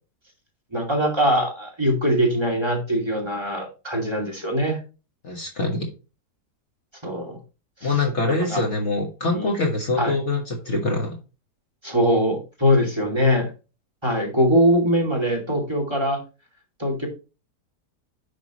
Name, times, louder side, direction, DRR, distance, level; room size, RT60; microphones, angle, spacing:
voice 1, 0.7-4.8 7.0-7.4 7.8-7.9 8.5-8.6 9.3-9.5 10.0-10.1 11.8-13.5 14.0-16.2 16.8-17.1, equal, 15° right, 1 dB, 2.6 m, -22 dB
voice 2, 5.2-5.9 7.8-11.2, left 2 dB, 45° left, 1 dB, 1.7 m, -24 dB
10.0 x 6.0 x 3.0 m, 0.31 s
omnidirectional pair, 1.7 m